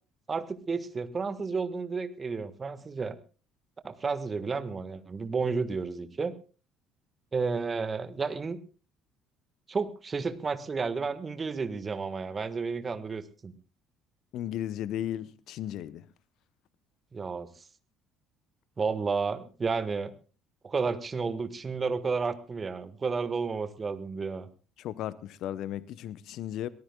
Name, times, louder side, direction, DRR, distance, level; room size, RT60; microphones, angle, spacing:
voice 1, 0.3-3.2 3.8-6.3 7.3-8.6 9.7-13.5 17.1-17.5 18.8-20.1 20.6-24.5, right 4 dB, 30° right, 1.5 m, -31 dB
voice 2, 14.3-16.1 24.8-26.7, left 11 dB, 55° left, 0.7 m, -35 dB
23.5 x 18.0 x 2.3 m
figure-of-eight pair, 55°, 0 cm